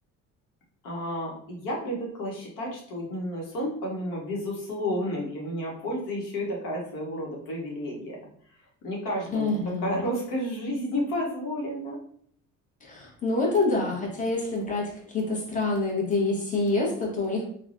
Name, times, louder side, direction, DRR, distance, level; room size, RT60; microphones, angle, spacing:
voice 1, 0.8-8.2 8.8-12.0, equal, 80° left, -2 dB, 1.0 m, -31 dB
voice 2, 9.3-10.0 12.8-17.4, left 3 dB, 25° left, -2 dB, 0.9 m, -27 dB
3.2 x 2.2 x 2.5 m, 0.62 s
cardioid pair, 110°, 32 cm